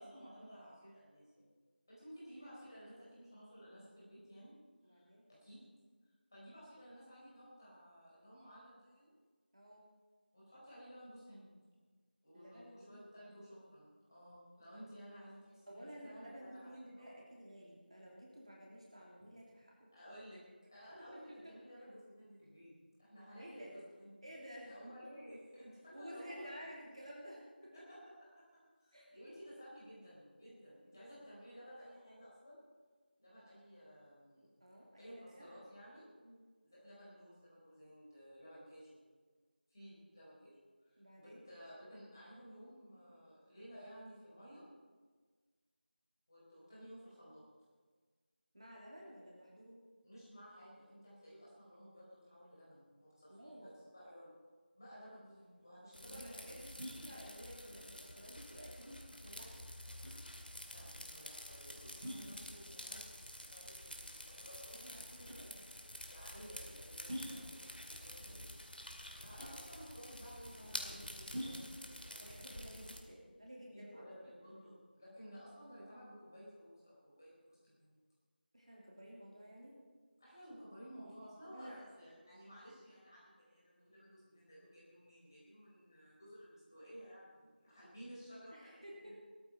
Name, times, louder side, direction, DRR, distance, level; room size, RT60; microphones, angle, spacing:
voice 1, 0.0-1.5 1.9-4.6 4.8-5.6 6.3-9.2 10.3-11.5 12.2-17.2 19.9-20.4 20.7-22.7 23.0-26.9 27.6-32.6 33.2-34.5 35.0-36.1 36.6-39.0 39.7-40.6 40.8-44.7 46.3-47.4 50.0-54.4 54.7-56.5 60.7-64.8 65.7-67.6 67.9-68.5 69.1-72.3 73.7-78.0 80.2-88.7 89.0-89.1, equal, 20° left, -8 dB, 4.6 m, -55 dB
voice 2, 4.8-5.3 9.5-9.9 12.3-13.3 15.7-19.9 21.4-21.5 23.4-23.7 24.2-24.7 25.9-27.4 28.9-29.1 34.6-35.5 36.2-36.5 41.0-41.4 48.5-49.8 53.3-53.7 56.0-59.6 64.7-65.7 68.3-68.5 72.2-74.1 78.5-79.7 81.4-81.8 88.5-89.1, equal, 35° right, -3 dB, 2.8 m, -53 dB
untitled sink plug, 55.2-73.7, equal, 15° right, 3.7 m, -51 dB
sound 1, 55.9-73.0, left 1 dB, 60° left, 2.3 m, -50 dB
18.5 x 13.5 x 4.4 m, 1.5 s
figure-of-eight pair, 175°, 6 cm